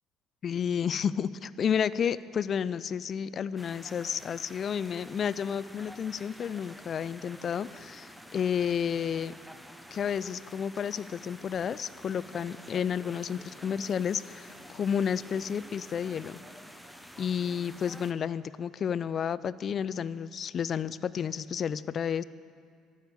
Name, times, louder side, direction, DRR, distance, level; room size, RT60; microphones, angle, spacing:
voice 1, 0.4-9.3 9.9-16.4 17.2-22.2, left 7 dB, 50° left, 18 dB, 0.3 m, -31 dB
sound 1, 3.6-18.1, equal, ahead, 0.8 m, -49 dB
12.5 x 6.2 x 8.1 m, 2.3 s
supercardioid pair, 80°, 0 cm